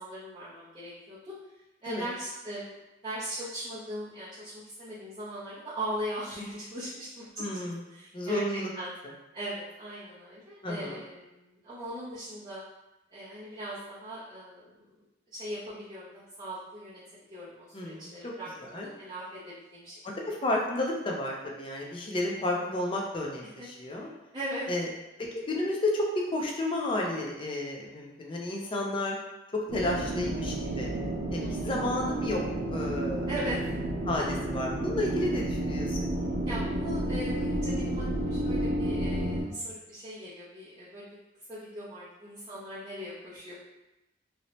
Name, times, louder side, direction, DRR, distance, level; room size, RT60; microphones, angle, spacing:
voice 1, 0.0-1.3 1.8-2.8 3.0-7.4 7.9-8.4 8.7-8.9 9.3-12.6 13.1-15.0 15.3-17.0 17.3-19.9 23.4-23.7 24.0-24.1 24.3-24.7 31.4-31.7 33.3-33.6 34.1-34.3 36.4-41.2 41.5-43.5, equal, 25° right, -11 dB, 0.6 m, -39 dB
voice 2, 7.4-7.8 8.1-8.7 10.6-11.0 17.7-18.1 18.6-18.9 20.0-24.1 24.7-24.9 25.2-29.2 29.5-30.9 31.3-32.4 32.7-33.3 34.1-34.2 34.5-36.0, left 1 dB, 30° left, -1 dB, 0.4 m, -31 dB
sound 1, 29.7-39.4, right 1 dB, 85° right, 0.5 m, -31 dB
2.7 x 2.0 x 2.9 m, 0.97 s
head